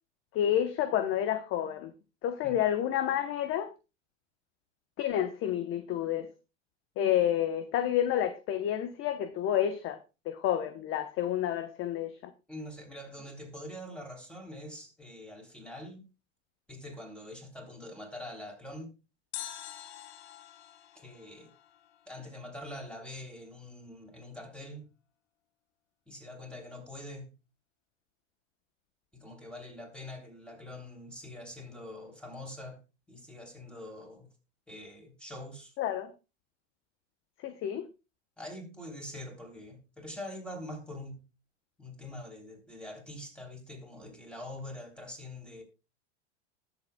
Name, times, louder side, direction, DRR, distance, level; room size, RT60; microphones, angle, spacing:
voice 1, 0.3-1.9 2.2-3.7 5.0-6.3 7.0-10.0 10.3-12.1 35.8-36.1 37.4-37.9, left 10 dB, 35° left, 0.9 m, -29 dB
voice 2, 12.5-16.0 16.7-18.9 21.0-21.5 22.1-24.9 26.1-27.3 29.1-34.3 34.7-35.7 38.4-41.2 41.8-45.6, left 1 dB, 5° left, 3.4 m, -44 dB
sound 1, 19.3-22.4 22.7-22.8, left 11 dB, 70° left, 1.3 m, -46 dB
19.5 x 7.1 x 2.2 m
hypercardioid pair, 115°, 35 cm